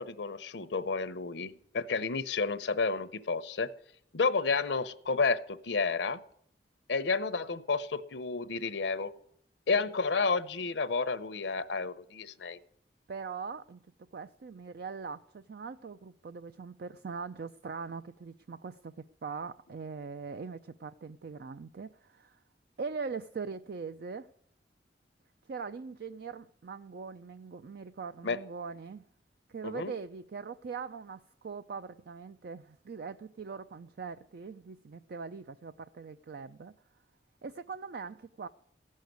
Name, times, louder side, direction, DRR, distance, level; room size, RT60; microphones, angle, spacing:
voice 1, 0.0-3.7 4.1-6.2 6.9-9.1 9.7-12.6 28.2-28.4 29.6-29.9, left 4 dB, 75° left, 0.8 m, -31 dB
voice 2, 13.1-13.8 14.1-22.4 22.8-24.3 25.5-29.0 29.5-36.7 37.4-38.5, right 5 dB, 60° right, 0.4 m, -41 dB
15.5 x 6.5 x 9.3 m
head